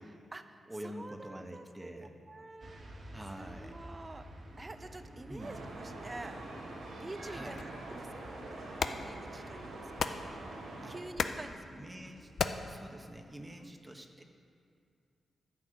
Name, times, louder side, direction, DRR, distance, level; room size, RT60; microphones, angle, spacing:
voice 1, 0.1-2.8 3.4-4.3 4.6-6.4 7.0-10.1 10.8-11.6 13.6-13.7, right 2 dB, 30° right, 10 dB, 0.7 m, -48 dB
voice 2, 0.7-2.2 3.1-3.8 5.3-5.6 7.3-7.6 10.8-10.9 11.7-12.3 12.7-14.2, right 1 dB, 15° right, 4 dB, 1.2 m, -46 dB
sound 1, 2.6-12.5, equal, 60° right, 1.7 m, -52 dB
sound 2, 5.4-11.0, right 2 dB, 85° right, 1.5 m, -45 dB
sound 3, 7.6-13.6, left 5 dB, 70° left, 0.5 m, -39 dB
10.0 x 6.0 x 8.0 m, 2.4 s
supercardioid pair, 50°, 0 cm